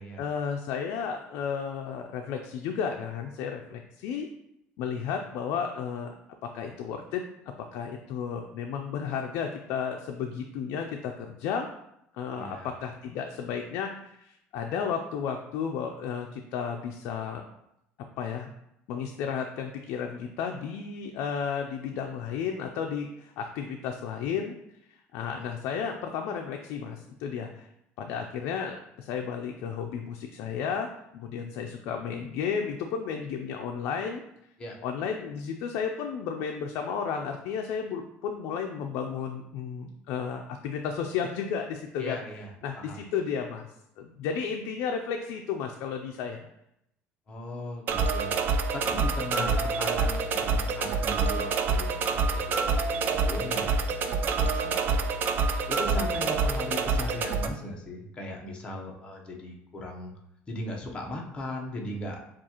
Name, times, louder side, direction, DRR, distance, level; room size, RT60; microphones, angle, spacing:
voice 1, 0.2-4.3 4.8-6.1 6.5-7.2 7.7-11.7 12.1-13.9 14.2-17.4 18.2-18.5 18.9-24.6 25.1-27.7 28.0-34.2 34.8-42.2 42.6-43.7 44.0-46.5 49.3-49.6, left 7 dB, 75° left, 3 dB, 0.4 m, -33 dB
voice 2, 12.3-12.7 34.6-34.8 42.0-43.0 47.3-60.1 60.5-62.2, left 1 dB, 20° left, -1 dB, 0.8 m, -38 dB
sound 1, 47.9-57.5, right 4 dB, 45° right, 0.4 m, -27 dB
7.1 x 2.4 x 2.9 m, 0.81 s
cardioid pair, 150°, 5 cm